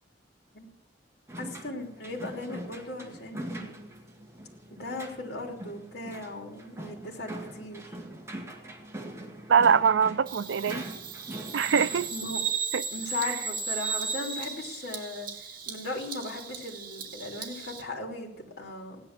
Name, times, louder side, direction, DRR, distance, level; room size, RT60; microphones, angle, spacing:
sound 1, 1.3-12.1, right 1 dB, 15° right, 2.0 m, -42 dB
voice 1, 1.4-3.8 4.7-8.0 12.1-12.4 12.9-15.3 15.7-19.0, left 2 dB, 60° left, 3.3 m, -37 dB
voice 2, 9.5-10.8 11.5-12.1 12.7-12.8 13.2-13.4, right 6 dB, 90° right, 0.5 m, -23 dB
Bird vocalization bird call bird song, 10.3-17.8, right 5 dB, 50° right, 2.3 m, -36 dB
16.5 x 10.5 x 7.5 m
head